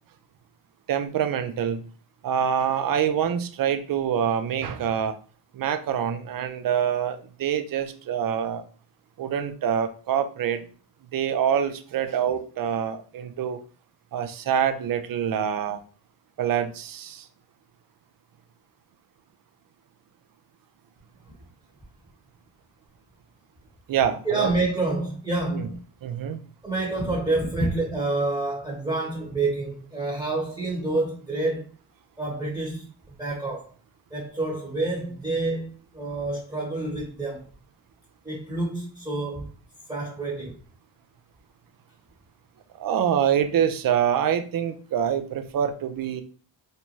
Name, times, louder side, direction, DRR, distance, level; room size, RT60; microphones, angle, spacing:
voice 1, 0.9-1.8 2.2-5.2 5.5-8.6 9.2-10.7 11.1-13.6 14.1-15.8 16.4-17.3 23.9-24.5 25.5-25.7 26.0-26.4 42.8-46.2, right 8 dB, 45° right, 0.5 m, -25 dB
voice 2, 24.2-25.8 26.6-31.7 32.2-32.8 33.2-33.7 34.1-37.5 38.2-39.5 39.9-40.5, right 2 dB, 5° right, 1.1 m, -28 dB
2.6 x 2.2 x 3.1 m
cardioid pair, 85°, 48 cm